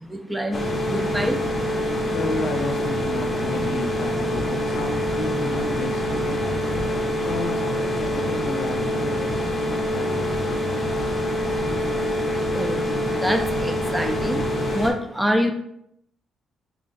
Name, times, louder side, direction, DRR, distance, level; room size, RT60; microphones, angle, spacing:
voice 1, 0.0-1.5 12.4-15.5, equal, 5° right, 0.4 m, -26 dB
sound 1, 0.5-14.9, equal, 30° left, 0.7 m, -25 dB
voice 2, 1.8-11.1, left 2 dB, 85° left, 0.6 m, -33 dB
2.9 x 2.3 x 4.0 m
cardioid pair, 90°, 0 cm